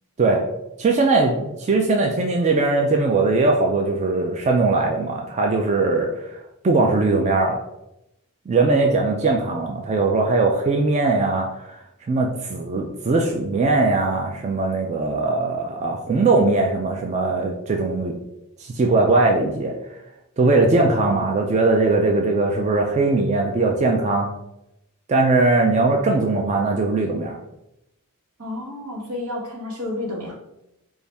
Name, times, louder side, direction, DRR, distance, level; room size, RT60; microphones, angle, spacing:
voice 1, 0.8-6.2 6.6-7.6 8.5-11.7 12.1-18.1 18.6-19.8 20.4-24.3 25.1-27.4, right 3 dB, 30° right, 1 dB, 0.3 m, -20 dB
voice 2, 28.4-30.3, left 2 dB, 80° right, -2 dB, 1.2 m, -30 dB
4.0 x 2.3 x 3.4 m, 0.88 s
head